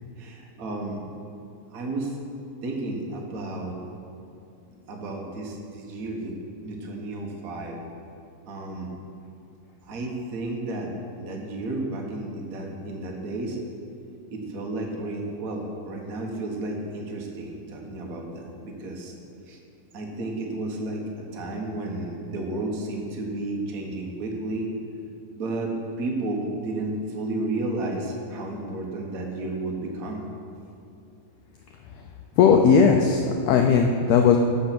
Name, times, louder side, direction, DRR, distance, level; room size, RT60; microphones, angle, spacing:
voice 1, 0.2-1.0 1.7-2.2 2.6-3.8 4.9-6.4 6.6-7.8 8.5-8.9 9.8-10.9 11.2-13.6 14.3-19.1 19.4-19.6 19.9-24.7 25.4-30.3, right 2 dB, 55° right, 0 dB, 1.0 m, -32 dB
voice 2, 32.4-34.4, left 6 dB, 90° left, 3 dB, 1.5 m, -18 dB
14.0 x 5.3 x 6.0 m, 2.6 s
omnidirectional pair, 3.7 m